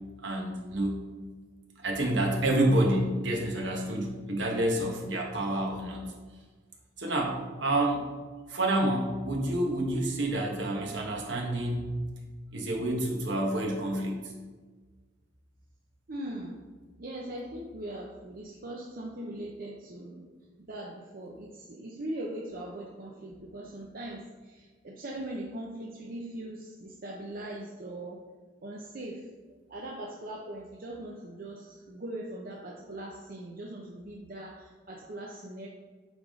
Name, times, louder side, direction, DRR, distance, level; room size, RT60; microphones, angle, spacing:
voice 1, 0.2-1.0 1.8-6.1 7.0-8.1 8.5-12.0 12.5-14.2, right 1 dB, 60° right, 0 dB, 1.3 m, -28 dB
voice 2, 16.1-16.6 17.0-20.2 20.7-28.2 28.6-29.3 29.7-35.7, right 1 dB, 45° right, -2 dB, 0.7 m, -40 dB
8.8 x 3.6 x 3.7 m, 1.4 s
head